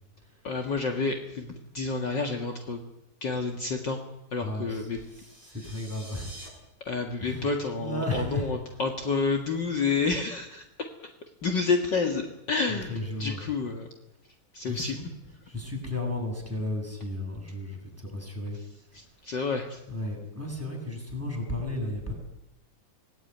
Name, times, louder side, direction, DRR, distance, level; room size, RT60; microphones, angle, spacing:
voice 1, 0.4-2.8 3.2-4.0 4.3-5.0 6.8-10.6 11.4-13.9 14.5-15.0 18.9-19.8, left 4 dB, 50° left, 3 dB, 1.3 m, -29 dB
voice 2, 4.4-6.3 7.2-7.5 7.8-8.5 12.7-13.4 14.6-15.0 15.5-18.6 18.9-19.0 19.9-22.1, left 1 dB, 5° right, 0 dB, 6.6 m, -34 dB
sound 1, 4.9-6.5, right 1 dB, 10° left, 6.5 m, -48 dB
26.0 x 19.0 x 9.4 m, 0.89 s
omnidirectional pair, 4.7 m